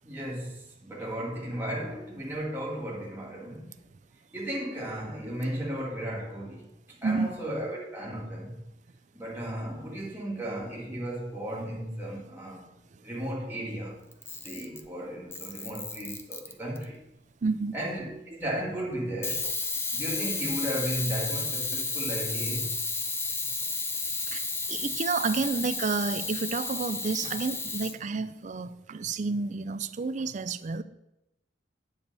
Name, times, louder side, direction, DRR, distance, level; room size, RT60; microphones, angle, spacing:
voice 1, 0.0-3.8 4.3-8.6 9.1-12.7 13.0-14.1 14.4-17.0 17.7-19.5 19.9-22.8, right 1 dB, 10° right, 1.9 m, -35 dB
voice 2, 7.0-7.4 17.4-17.8 24.2-30.8, right 4 dB, 40° right, 0.4 m, -30 dB
Camera, 14.1-14.9 15.3-16.8 19.2-28.0, left 3 dB, 15° left, 0.5 m, -32 dB
8.6 x 7.2 x 4.0 m
head